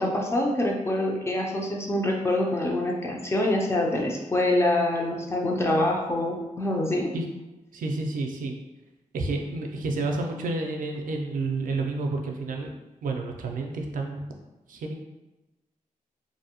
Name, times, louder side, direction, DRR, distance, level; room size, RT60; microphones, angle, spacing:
voice 1, 0.0-7.1, left 1 dB, 20° left, 0 dB, 0.3 m, -25 dB
voice 2, 7.7-8.5 9.1-12.7 13.0-14.3 14.7-14.9, right 3 dB, 80° right, 2 dB, 0.4 m, -30 dB
2.5 x 2.0 x 2.8 m, 1.0 s
wide cardioid pair, 135°, 14 cm